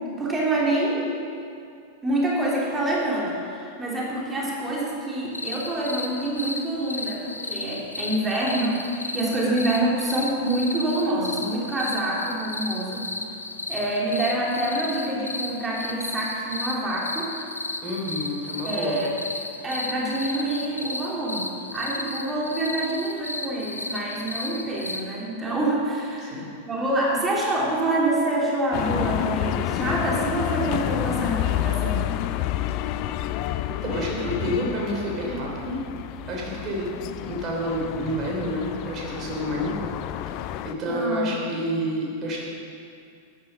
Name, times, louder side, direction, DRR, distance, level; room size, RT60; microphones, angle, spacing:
voice 1, 0.1-1.1 2.0-13.0 13.7-17.3 18.6-19.1 19.6-21.5 21.7-32.0 40.9-41.3, right 1 dB, 15° right, -4 dB, 2.9 m, -26 dB
sound 1, 5.3-25.0, left 2 dB, 80° left, 0.8 m, -34 dB
voice 2, 17.8-19.0 26.2-26.5 33.8-35.8 36.3-36.9 37.2-39.9 40.3-40.4 40.6-42.4, equal, 30° right, -3 dB, 3.5 m, -29 dB
sound 2, 28.7-40.7, left 12 dB, 40° left, 0.5 m, -29 dB
12.5 x 11.0 x 5.7 m, 2.4 s
figure-of-eight pair, 90°, 0 cm